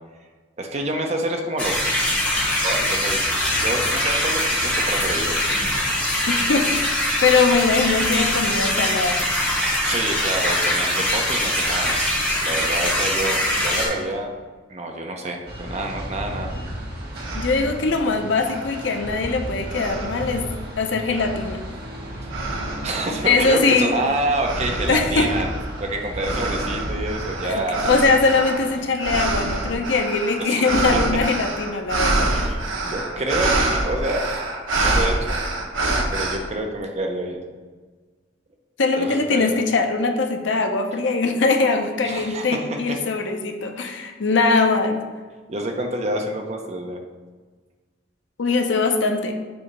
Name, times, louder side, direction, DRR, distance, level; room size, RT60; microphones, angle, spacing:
voice 1, 0.6-1.8 2.6-3.2 3.6-5.4 9.8-12.0 12.4-14.3 14.7-16.5 22.8-25.5 25.8-27.9 30.4-31.1 32.3-34.3 34.7-35.4 36.1-37.4 39.0-39.6 42.0-42.6 45.5-47.0, right 1 dB, 35° right, 2 dB, 0.7 m, -27 dB
sound 1, 1.6-13.9, left 1 dB, 5° left, 1.5 m, -22 dB
voice 2, 6.3-9.3 17.3-20.5 20.8-21.6 23.3-23.9 24.9-25.3 27.5-32.3 38.8-45.0 48.4-49.3, left 4 dB, 65° left, 4 dB, 0.6 m, -21 dB
sound 2, 15.5-28.8, equal, 55° right, 1.2 m, -34 dB
sound 3, 16.7-16.8 17.2-17.8 18.4-19.3 19.7-20.5 21.1-21.6 22.3-23.1 23.6-36.4, right 2 dB, 80° right, 0.8 m, -26 dB
6.9 x 2.8 x 5.2 m, 1.4 s
head